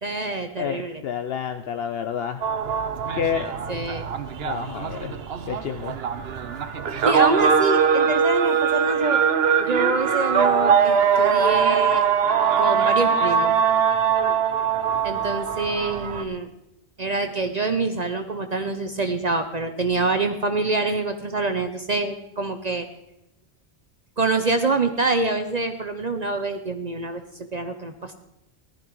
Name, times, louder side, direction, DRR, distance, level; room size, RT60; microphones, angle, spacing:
voice 1, 0.0-1.0 3.7-4.0 7.0-9.2 9.6-12.0 12.6-13.5 15.0-16.5 17.0-22.9 24.2-27.2 27.5-28.1, right 3 dB, 45° right, 7 dB, 0.9 m, -25 dB
voice 2, 0.6-2.4 3.1-3.8 4.4-5.1 5.5-6.0, left 8 dB, 70° left, 8 dB, 0.9 m, -29 dB
sound 1, 2.4-16.2, right 6 dB, 70° right, 1.1 m, -22 dB
15.0 x 12.0 x 4.6 m, 0.89 s
omnidirectional pair, 1.1 m